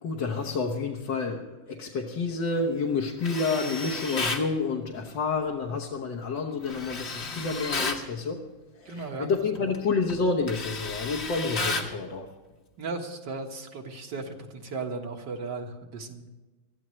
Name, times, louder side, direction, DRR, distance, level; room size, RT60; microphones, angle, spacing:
voice 1, 0.0-8.4 8.8-12.3, left 4 dB, 70° left, 0 dB, 1.9 m, -29 dB
Tools, 3.2-4.5 6.7-8.0 9.5-9.8 10.1-12.0, left 3 dB, 40° left, 1.3 m, -32 dB
voice 2, 8.9-9.3 12.8-16.3, right 3 dB, 65° right, 3 dB, 2.1 m, -36 dB
22.0 x 13.5 x 3.2 m, 1.2 s
omnidirectional pair, 2.1 m